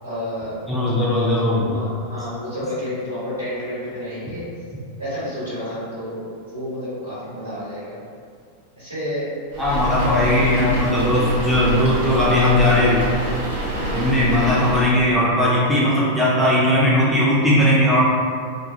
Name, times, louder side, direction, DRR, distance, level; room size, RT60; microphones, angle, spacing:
voice 1, 0.0-0.6 0.9-4.5 5.0-6.2 6.5-8.0 8.8-9.3, left 1 dB, 90° right, -12 dB, 1.4 m, -30 dB
voice 2, 0.7-1.7 9.6-13.0 13.9-18.0, left 1 dB, ahead, -8 dB, 0.4 m, -18 dB
sound 1, 9.5-14.8, right 1 dB, 60° right, 0.6 m, -26 dB
2.3 x 2.1 x 2.6 m, 2.2 s
figure-of-eight pair, 90°, 0 cm